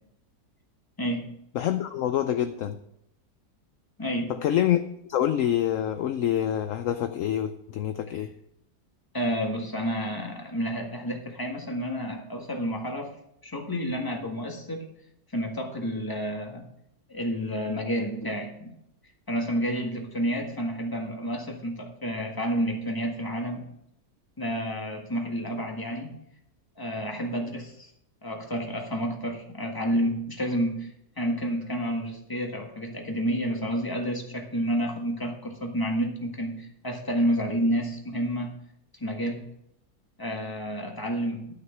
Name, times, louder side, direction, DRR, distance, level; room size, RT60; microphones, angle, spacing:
voice 1, 1.0-1.3 4.0-4.3 9.1-13.1 13.4-14.9 15.3-16.7 17.1-18.7 19.3-23.6 24.4-26.1 26.8-27.9 28.2-30.9 31.2-38.5 39.0-39.4 40.2-41.4, equal, 15° left, 1 dB, 1.6 m, -30 dB
voice 2, 1.5-2.8 4.4-4.8 5.1-8.3, left 11 dB, 65° left, 9 dB, 0.9 m, -26 dB
12.0 x 6.4 x 5.9 m, 0.76 s
omnidirectional pair, 1.7 m